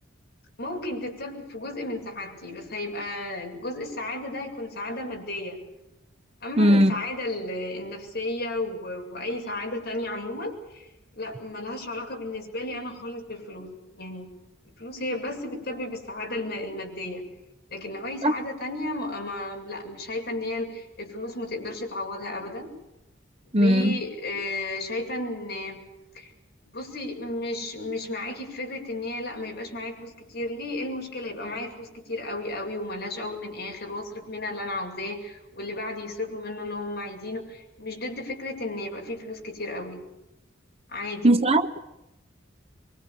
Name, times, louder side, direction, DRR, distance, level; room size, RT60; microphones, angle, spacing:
voice 1, 0.6-5.6 6.4-10.9 11.2-14.4 14.6-17.3 17.7-22.7 23.5-25.8 26.1-26.3 26.7-40.1 40.9-41.4, left 2 dB, 60° left, 7.5 m, -33 dB
voice 2, 6.6-6.9 18.2-18.3 23.5-24.0 41.2-41.8, right 1 dB, 30° right, 1.2 m, -19 dB
25.0 x 24.5 x 7.1 m
head